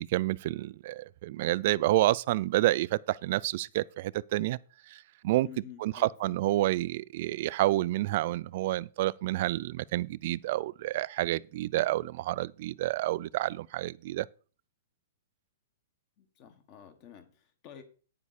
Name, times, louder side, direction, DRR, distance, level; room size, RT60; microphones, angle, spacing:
voice 1, 0.0-4.6 4.9-5.5 5.8-14.3, right 16 dB, 45° right, 0.3 m, -29 dB
voice 2, 5.4-6.4 16.2-17.8, left 9 dB, 35° left, 1.6 m, -50 dB
9.6 x 7.1 x 4.2 m
hypercardioid pair, 160°, 0 cm